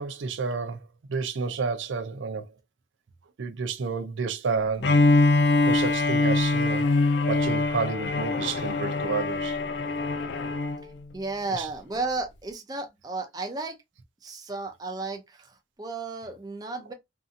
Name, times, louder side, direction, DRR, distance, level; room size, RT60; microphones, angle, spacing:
voice 1, 0.0-2.5 3.4-5.0 5.7-6.9 7.3-9.6 11.5-11.7, right 5 dB, 85° right, 0.5 m, -30 dB
Bowed string instrument, 4.8-10.8, left 2 dB, 65° left, 0.4 m, -23 dB
voice 2, 10.8-13.8 14.2-16.9, right 3 dB, 20° right, 0.5 m, -34 dB
2.6 x 2.5 x 2.4 m
head